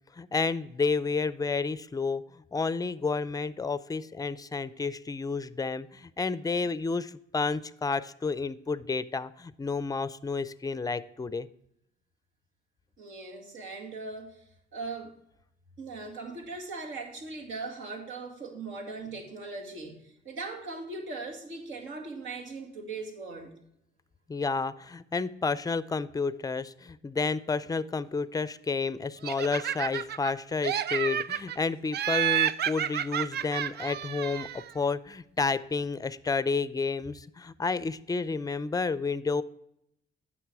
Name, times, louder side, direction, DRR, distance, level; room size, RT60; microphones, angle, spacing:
voice 1, 0.2-2.2 2.5-11.5 24.3-39.4, left 4 dB, 20° left, 17 dB, 0.4 m, -30 dB
voice 2, 13.0-14.4 14.7-15.1 15.8-23.5, right 3 dB, 75° right, 2 dB, 2.1 m, -39 dB
Laughter, 29.2-30.3 30.6-31.6 31.9-34.7, right 10 dB, 55° right, 0.4 m, -30 dB
9.2 x 6.1 x 4.7 m, 0.78 s
cardioid pair, 90°, 20 cm